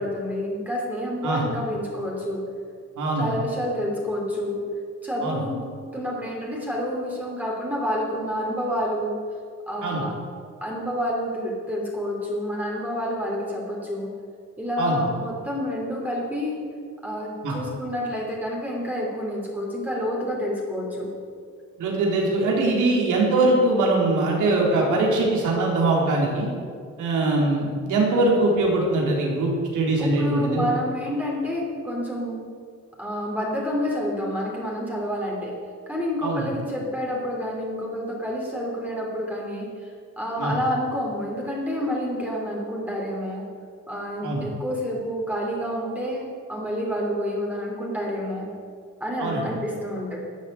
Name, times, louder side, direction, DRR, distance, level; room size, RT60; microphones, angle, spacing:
voice 1, 0.0-2.4 3.2-4.6 5.0-5.6 5.9-9.1 9.7-10.1 10.6-14.1 14.6-16.6 17.0-21.1 30.0-32.4 33.0-35.5 35.9-39.9 40.2-43.4 43.9-48.5 49.0-50.2, equal, 5° right, -3 dB, 3.1 m, -28 dB
voice 2, 3.0-3.3 5.2-5.4 9.8-10.0 14.8-15.0 17.4-17.6 21.8-26.5 27.0-30.7 36.2-36.4 40.4-40.5 44.2-44.4 49.2-49.4, right 2 dB, 80° right, -2 dB, 3.8 m, -22 dB
12.5 x 7.1 x 9.3 m, 2.2 s
cardioid pair, 90°, 30 cm